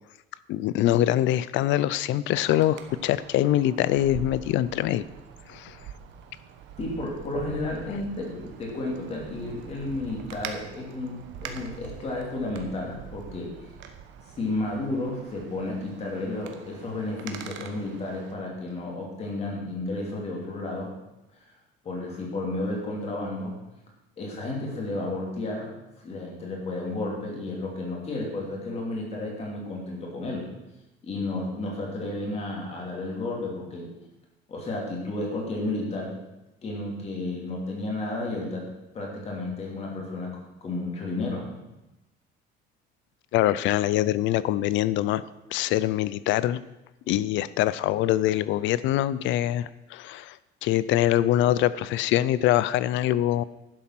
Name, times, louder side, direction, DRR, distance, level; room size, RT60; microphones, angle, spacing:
voice 1, 0.5-5.0 5.5-5.8 43.3-45.2 45.5-46.6 47.1-53.4, left 13 dB, 65° left, 17 dB, 0.5 m, -24 dB
Wind, 2.3-18.3, right 8 dB, 65° right, 1.2 m, -44 dB
voice 2, 6.8-13.5 14.4-20.9 21.8-23.6 24.2-25.7 26.0-30.5 31.0-33.9 34.5-36.2 36.6-38.6 38.9-41.6, left 2 dB, 30° left, -1 dB, 2.9 m, -32 dB
11.5 x 7.4 x 6.0 m, 0.96 s
cardioid pair, 175°, 21 cm